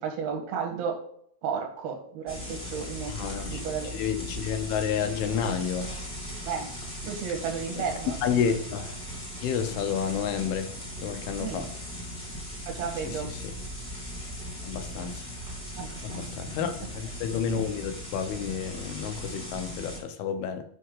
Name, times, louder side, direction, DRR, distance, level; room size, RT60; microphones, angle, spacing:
voice 1, 0.0-1.0 1.4-3.1 3.5-3.9 6.5-6.7 7.0-8.2 11.4-11.6 12.7-13.3 15.8-16.7, right 6 dB, 80° right, 3.3 m, -33 dB
sound 1, 2.3-20.0, equal, 10° left, 1.7 m, -38 dB
voice 2, 3.1-3.6 3.9-5.9 7.8-7.9 8.2-8.9 9.4-10.7 11.0-11.7 13.0-13.5 14.6-15.3 16.0-20.6, left 7 dB, 85° left, 2.8 m, -30 dB
7.4 x 5.5 x 3.8 m
omnidirectional pair, 4.3 m